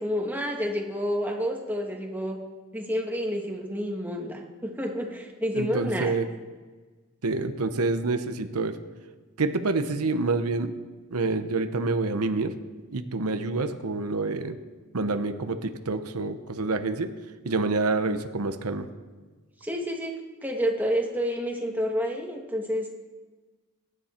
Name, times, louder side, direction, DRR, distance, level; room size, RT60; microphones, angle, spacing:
voice 1, 0.0-2.4 2.7-6.1 19.6-20.1 20.4-22.9, equal, 10° right, 0 dB, 1.6 m, -29 dB
voice 2, 5.5-6.3 7.2-8.7 9.4-10.7 11.1-12.5 12.9-14.6 14.9-17.1 17.4-18.9, right 3 dB, 85° right, 9 dB, 0.9 m, -27 dB
22.5 x 10.0 x 4.4 m, 1.3 s
head